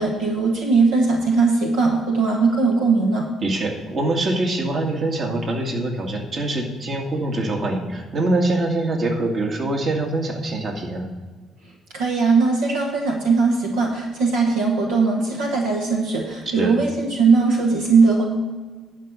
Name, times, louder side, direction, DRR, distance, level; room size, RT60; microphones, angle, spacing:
voice 1, 0.0-3.3 11.9-18.3, right 4 dB, 80° right, -1 dB, 1.3 m, -19 dB
voice 2, 3.4-11.1 16.5-16.7, right 2 dB, 50° right, 1 dB, 2.0 m, -24 dB
11.0 x 5.1 x 6.8 m, 1.4 s
hypercardioid pair, 55°, 0 cm